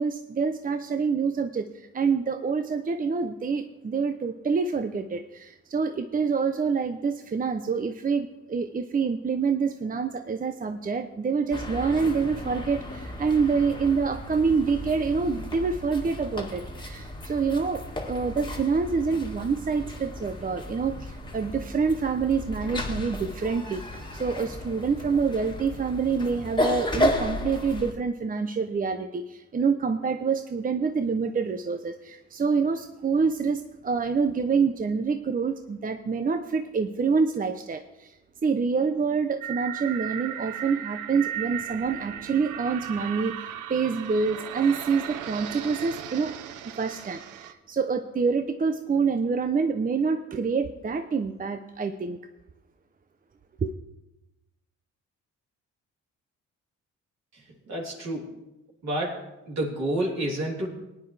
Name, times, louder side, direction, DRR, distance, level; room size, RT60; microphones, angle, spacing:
voice 1, 0.0-38.2 38.4-46.3 46.6-52.2 53.6-53.7, right 5 dB, 30° right, 8 dB, 0.7 m, -27 dB
sound 1, 11.5-27.9, left 1 dB, 15° left, 1.9 m, -34 dB
sound 2, 39.4-47.5, right 11 dB, 90° right, 0.8 m, -36 dB
voice 2, 57.3-58.4 58.8-60.7, right 1 dB, 60° right, -2 dB, 3.7 m, -30 dB
19.5 x 9.6 x 3.4 m, 0.96 s
cardioid pair, 90°, 30 cm